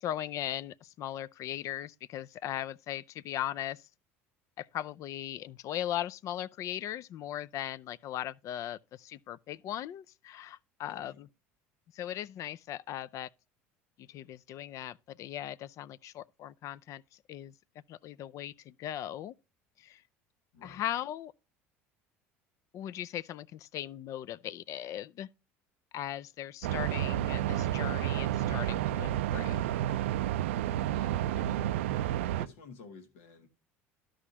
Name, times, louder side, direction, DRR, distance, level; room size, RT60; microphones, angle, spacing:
voice 1, 0.0-3.8 4.6-11.3 11.9-13.3 14.0-17.0 17.3-17.5 17.9-19.3 19.8-20.0 20.6-21.3 22.7-25.3 25.9-29.9, left 12 dB, 55° left, 0.4 m, -38 dB
voice 2, 10.9-11.2 20.5-20.8 30.8-32.1 32.4-33.5, left 4 dB, 85° left, 1.7 m, -51 dB
sound 1, 26.6-32.5, right 12 dB, 90° right, 0.4 m, -30 dB
13.0 x 5.0 x 2.8 m
supercardioid pair, 85°, 7 cm